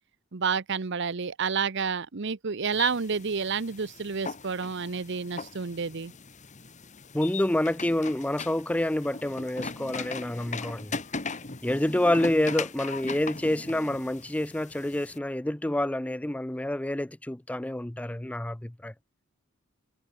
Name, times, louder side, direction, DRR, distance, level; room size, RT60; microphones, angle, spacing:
voice 1, 0.3-6.1, right 5 dB, 55° right, 0.8 m, -29 dB
sound 1, 2.7-15.2, left 4 dB, 35° left, 1.6 m, -39 dB
voice 2, 7.1-11.0 11.6-18.9, left 1 dB, 5° left, 0.4 m, -28 dB
head